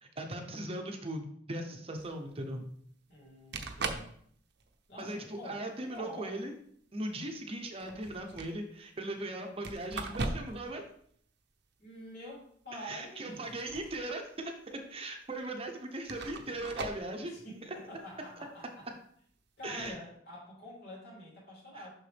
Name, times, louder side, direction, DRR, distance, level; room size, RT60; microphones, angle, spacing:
voice 1, 0.0-2.7 5.0-6.5 6.9-10.8 12.7-17.3 17.7-17.8 19.6-19.9 21.8-21.9, right 1 dB, 30° right, 4 dB, 0.8 m, -39 dB
sound 1, 2.0-2.1 3.2-3.3 3.5-4.1 4.6-4.9 5.9-6.0 7.7-8.5 9.6-10.7 11.0-11.1 13.3-14.1 14.4-14.5 15.3-15.4 16.0-17.1 19.7-19.9, right 3 dB, 65° right, 0.8 m, -39 dB
voice 2, 3.1-4.1 4.9-6.3 11.8-13.5 17.2-18.9 19.6-21.9, left 1 dB, 60° left, -4 dB, 3.1 m, -47 dB
6.7 x 5.9 x 3.4 m, 0.64 s
head